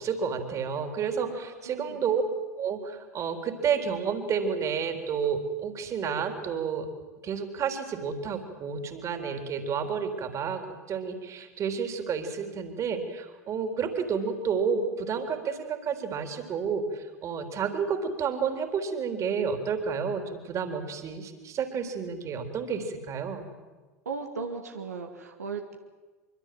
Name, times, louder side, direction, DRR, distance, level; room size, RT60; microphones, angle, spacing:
voice 1, 0.0-2.2 2.6-6.9 7.2-10.6 10.9-23.5, right 6 dB, 35° right, 6 dB, 3.8 m, -30 dB
voice 2, 1.3-2.0 24.1-25.8, right 4 dB, 80° right, 3 dB, 2.0 m, -37 dB
25.0 x 24.5 x 7.9 m, 1.3 s
figure-of-eight pair, 80°, 9 cm